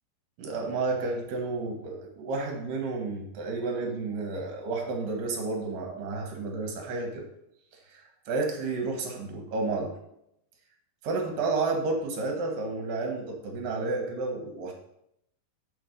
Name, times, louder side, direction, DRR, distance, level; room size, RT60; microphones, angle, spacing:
voice 1, 0.4-7.2 7.9-10.0 11.0-14.7, right 3 dB, 70° right, 1 dB, 2.6 m, -31 dB
7.0 x 5.0 x 5.1 m, 0.78 s
omnidirectional pair, 4.3 m